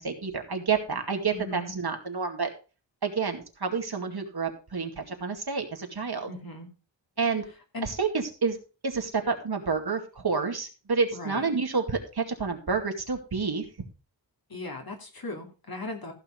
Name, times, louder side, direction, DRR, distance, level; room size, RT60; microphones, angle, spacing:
voice 1, 0.0-2.5 3.0-6.3 7.2-7.4 7.8-8.6 8.8-13.6, right 5 dB, 55° right, 4 dB, 2.3 m, -29 dB
voice 2, 1.3-1.7 6.3-6.7 7.7-7.9 11.1-11.5 14.5-16.1, left 2 dB, 55° left, 3 dB, 2.9 m, -38 dB
15.0 x 5.8 x 5.2 m, 0.34 s
wide cardioid pair, 105°, 44 cm